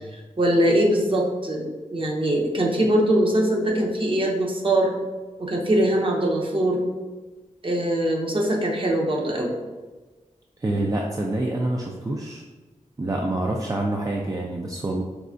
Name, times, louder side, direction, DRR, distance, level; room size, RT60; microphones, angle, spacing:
voice 1, 0.4-4.9 5.4-6.8 7.6-9.5, right 1 dB, 40° right, -1 dB, 0.8 m, -22 dB
voice 2, 10.6-12.4 13.0-15.0, right 1 dB, 25° right, -1 dB, 0.4 m, -26 dB
4.7 x 3.2 x 2.5 m, 1.3 s
wide cardioid pair, 85°, 13 cm